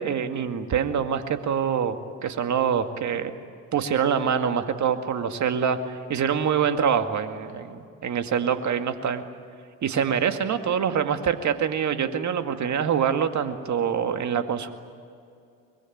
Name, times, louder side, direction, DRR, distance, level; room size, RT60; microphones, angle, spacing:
voice 1, 0.0-2.0 2.2-3.3 3.7-9.2 9.8-14.7, right 7 dB, 40° right, 8 dB, 2.1 m, -25 dB
24.0 x 22.0 x 9.4 m, 2.4 s
hypercardioid pair, 65°, 42 cm